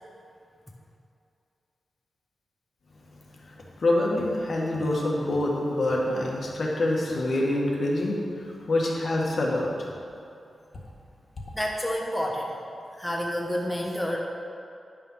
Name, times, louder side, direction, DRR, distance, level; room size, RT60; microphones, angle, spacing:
voice 1, 3.5-9.7, left 1 dB, 55° left, -2 dB, 1.7 m, -26 dB
voice 2, 11.5-12.5 12.9-14.2, equal, 5° left, -1 dB, 1.0 m, -29 dB
11.0 x 5.5 x 5.7 m, 2.6 s
wide cardioid pair, 90°, 0 cm